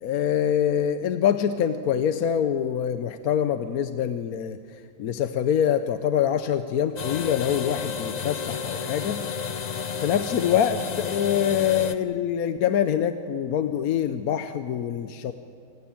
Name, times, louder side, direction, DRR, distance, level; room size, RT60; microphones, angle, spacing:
voice 1, 0.0-4.6 5.0-9.2 10.0-15.3, left 9 dB, 75° left, 10 dB, 1.2 m, -25 dB
sound 1, 7.0-12.0, left 6 dB, 45° left, 0.5 m, -31 dB
27.0 x 16.5 x 9.0 m, 2.3 s
omnidirectional pair, 1.6 m